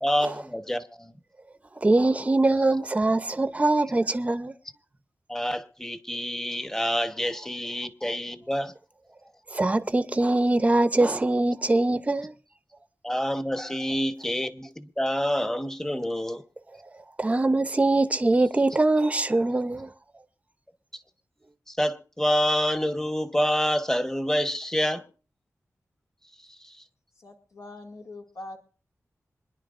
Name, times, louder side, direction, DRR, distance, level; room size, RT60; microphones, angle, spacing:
voice 1, 0.0-1.1 5.3-8.7 13.0-16.4 21.7-25.1 26.6-26.8, equal, 10° left, 1.0 m, -27 dB
voice 2, 1.8-4.5 9.5-12.3 17.2-19.9, right 2 dB, 25° right, 0.7 m, -23 dB
voice 3, 27.2-28.6, left 2 dB, 75° left, 2.3 m, -42 dB
26.5 x 10.5 x 2.5 m
wide cardioid pair, 110°, 6 cm